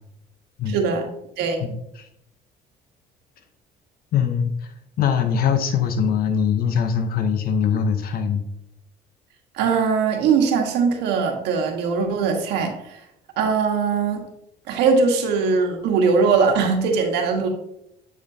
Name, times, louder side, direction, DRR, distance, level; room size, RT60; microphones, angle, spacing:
voice 1, 0.7-1.1 1.4-1.7 9.5-13.0 13.4-14.2 14.7-17.5, right 5 dB, 85° right, 3 dB, 1.3 m, -21 dB
voice 2, 1.6-2.0 4.1-4.5 5.0-8.4, left 7 dB, 60° left, 8 dB, 0.7 m, -22 dB
8.3 x 5.2 x 2.7 m, 0.80 s
cardioid pair, 110°, 17 cm